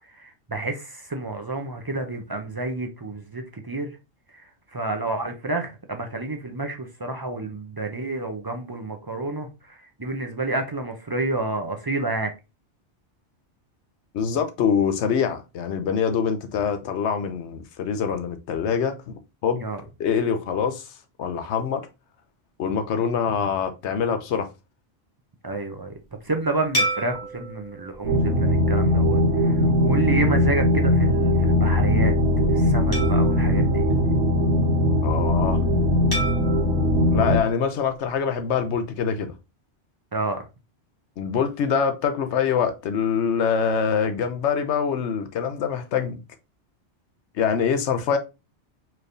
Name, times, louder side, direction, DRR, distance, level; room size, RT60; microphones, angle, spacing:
voice 1, 0.1-4.0 4.7-12.3 19.6-19.8 25.4-25.9 26.2-32.1 32.5-33.8 40.1-40.5, right 2 dB, 35° right, 0.3 m, -29 dB
voice 2, 14.1-19.6 20.0-20.9 21.2-21.8 22.6-24.5 35.0-35.6 37.1-39.3 41.2-46.2 47.3-48.2, left 7 dB, 75° left, 1.0 m, -24 dB
sound 1, 26.7-29.4 30.0-30.2 32.9-34.7 36.1-38.4, right 1 dB, 20° left, 1.6 m, -33 dB
sound 2, 28.0-37.4, left 1 dB, 85° right, 1.4 m, -20 dB
4.5 x 3.3 x 2.5 m
omnidirectional pair, 1.2 m